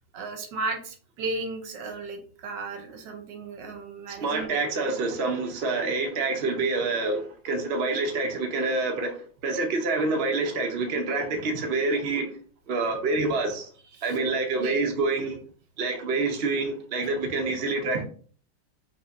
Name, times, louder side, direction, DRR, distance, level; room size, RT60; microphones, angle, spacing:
voice 1, 0.1-4.9 13.9-14.2 14.6-14.9, right 3 dB, 70° right, 1.4 m, -35 dB
voice 2, 4.2-12.3 12.7-13.7 14.0-15.4 15.8-18.0, right 3 dB, 55° right, 0.7 m, -27 dB
5.4 x 3.3 x 2.6 m
omnidirectional pair, 2.1 m